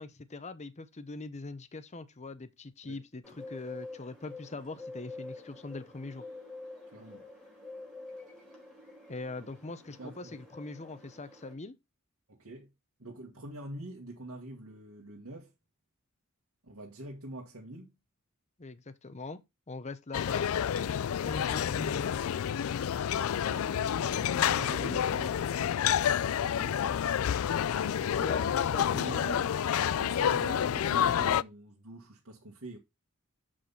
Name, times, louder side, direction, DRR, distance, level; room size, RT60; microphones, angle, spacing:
voice 1, 0.0-6.2 9.1-11.7 18.6-19.4 19.7-20.5 21.2-22.2 26.6-26.8 27.9-29.4, left 3 dB, 30° left, 0.7 m, -42 dB
Bird, 3.2-11.5, left 2 dB, 5° left, 4.1 m, -47 dB
voice 2, 6.9-7.2 10.0-10.4 12.3-12.7 13.0-15.5 16.6-17.9 23.4-25.8 26.4-27.0 28.2-29.5 30.0-32.8, right 1 dB, 75° right, 1.7 m, -45 dB
sound 1, 20.1-31.4, left 9 dB, 70° left, 0.4 m, -29 dB
7.7 x 6.1 x 4.1 m
head